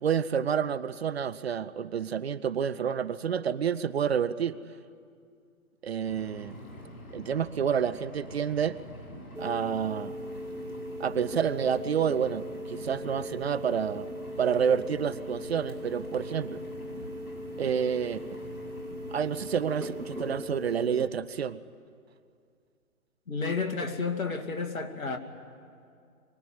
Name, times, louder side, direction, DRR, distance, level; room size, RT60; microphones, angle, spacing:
voice 1, 0.0-4.5 5.8-6.6 7.1-8.8 9.4-10.1 11.0-14.1 14.4-16.6 17.6-18.2 19.1-21.6, right 7 dB, 45° right, 0.7 m, -29 dB
Engine, 6.1-20.3, equal, 85° left, 7.2 m, -46 dB
sound 1, 9.4-21.1, equal, 85° right, 2.4 m, -39 dB
voice 2, 23.3-25.2, left 4 dB, 65° left, 2.5 m, -31 dB
24.0 x 20.0 x 9.7 m
figure-of-eight pair, 135°, 44 cm